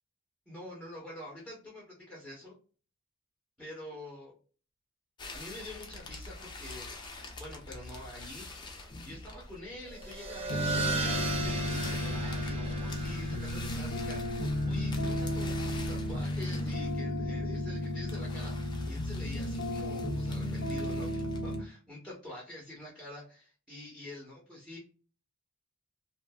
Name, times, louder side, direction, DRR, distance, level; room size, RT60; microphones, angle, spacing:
voice 1, 0.5-2.5 3.6-4.3 5.3-7.0 7.4-8.5 9.0-24.8, left 1 dB, 5° right, -6 dB, 1.0 m, -46 dB
sound 1, 5.2-21.5, left 2 dB, 20° left, 0.5 m, -45 dB
sound 2, 9.8-16.9, right 3 dB, 30° right, 0.6 m, -38 dB
sound 3, 10.5-21.6, left 1 dB, 70° left, 0.5 m, -33 dB
2.7 x 2.5 x 2.2 m, 0.37 s
head